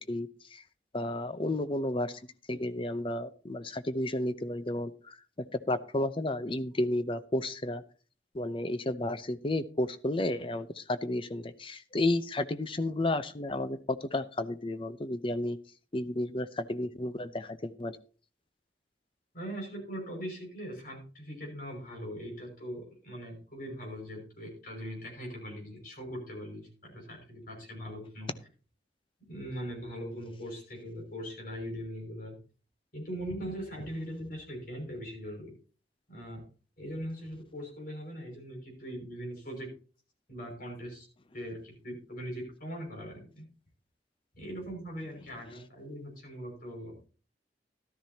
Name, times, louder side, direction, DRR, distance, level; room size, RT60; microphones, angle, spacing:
voice 1, 0.1-0.6 0.9-2.2 2.5-7.8 8.3-15.6 15.9-18.0, left 1 dB, 30° left, 12 dB, 0.7 m, -32 dB
voice 2, 19.3-28.3 29.3-32.4 32.9-35.5 36.1-36.4 36.8-39.7 40.3-41.1 41.3-43.5 44.3-47.0, equal, 55° left, 0 dB, 5.8 m, -40 dB
13.5 x 12.5 x 2.8 m, 0.38 s
head